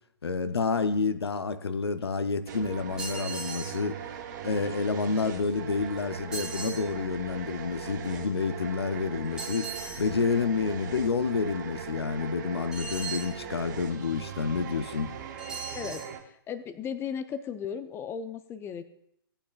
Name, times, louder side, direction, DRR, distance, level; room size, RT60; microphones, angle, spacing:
voice 1, 0.2-4.0 4.4-15.2, left 4 dB, 85° left, 11 dB, 0.7 m, -29 dB
sound 1, 2.5-16.2, right 8 dB, 50° right, 1.2 m, -40 dB
sound 2, 3.0-3.8 6.3-6.8 9.4-10.1 12.7-13.3 15.4-16.1, right 4 dB, 5° right, 2.0 m, -38 dB
voice 2, 15.7-18.8, left 7 dB, 20° left, 12 dB, 0.6 m, -36 dB
16.0 x 8.8 x 2.4 m, 0.73 s
hypercardioid pair, 125°, 13 cm